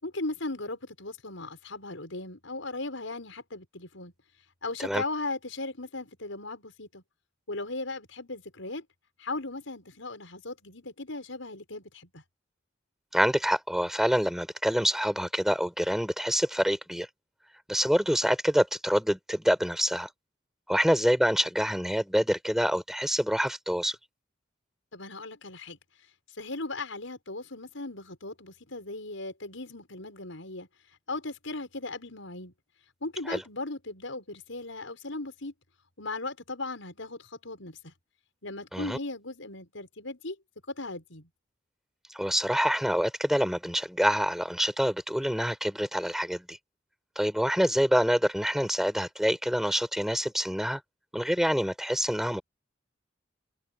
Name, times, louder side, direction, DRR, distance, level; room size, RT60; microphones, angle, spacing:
voice 1, 0.0-4.1 4.6-7.0 7.5-8.8 9.2-12.2 24.9-25.8 26.4-30.7 31.1-32.5 33.0-35.5 36.0-37.9 38.4-40.4 40.7-41.3, left 2 dB, 85° left, 6.2 m, -37 dB
voice 2, 13.1-17.1 17.7-20.1 20.7-24.0 33.3-33.4 38.7-39.0 42.1-46.6 47.2-50.8 51.1-52.4, equal, ahead, 5.4 m, -26 dB
head